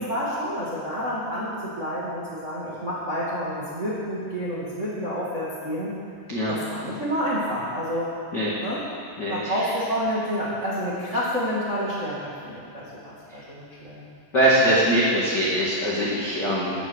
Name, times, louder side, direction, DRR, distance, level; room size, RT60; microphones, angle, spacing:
voice 1, 0.0-5.9 6.5-8.1 8.6-8.8 9.3-14.0, equal, 50° right, -7 dB, 0.8 m, -29 dB
voice 2, 9.2-9.6 14.3-16.7, right 1 dB, 60° left, -7 dB, 1.1 m, -22 dB
15.5 x 8.9 x 6.5 m, 2.2 s
omnidirectional pair, 5.5 m